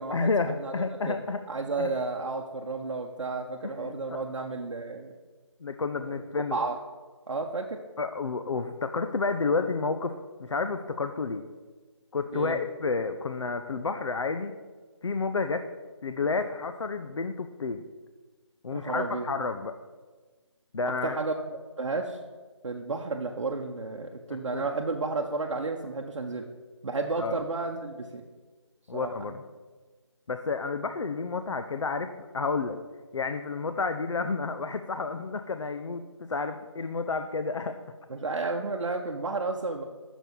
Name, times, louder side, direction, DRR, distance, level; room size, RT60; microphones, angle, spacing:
voice 1, 0.1-1.4 1.8-1.9 3.6-4.2 5.6-6.6 8.0-11.4 12.1-14.5 15.0-15.7 16.0-17.8 18.6-19.7 20.7-21.2 24.5-24.6 27.2-27.4 28.9-29.4 30.3-32.8 33.1-37.8, left 4 dB, 70° left, 8 dB, 0.6 m, -30 dB
voice 2, 1.5-5.1 6.0-6.8 7.3-7.8 12.3-12.6 18.7-19.3 21.0-22.2 22.6-26.5 26.8-28.2 28.9-29.1 38.1-39.8, right 3 dB, 75° right, 1 dB, 0.7 m, -32 dB
6.2 x 6.0 x 5.3 m, 1.4 s
figure-of-eight pair, 170°, 16 cm